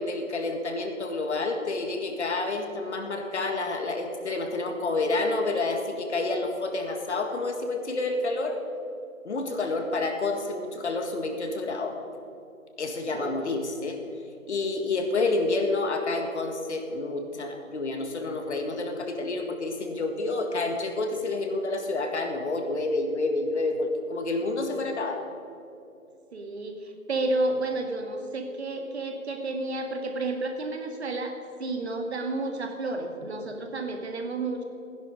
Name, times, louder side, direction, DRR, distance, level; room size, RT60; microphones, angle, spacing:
voice 1, 0.0-8.6 9.2-12.0 12.8-14.0 14.5-25.2, left 2 dB, 55° left, 4 dB, 1.9 m, -29 dB
voice 2, 13.1-13.4 26.3-34.6, right 2 dB, 50° right, 5 dB, 1.9 m, -31 dB
15.5 x 11.0 x 5.4 m, 2.7 s
figure-of-eight pair, 150°, 41 cm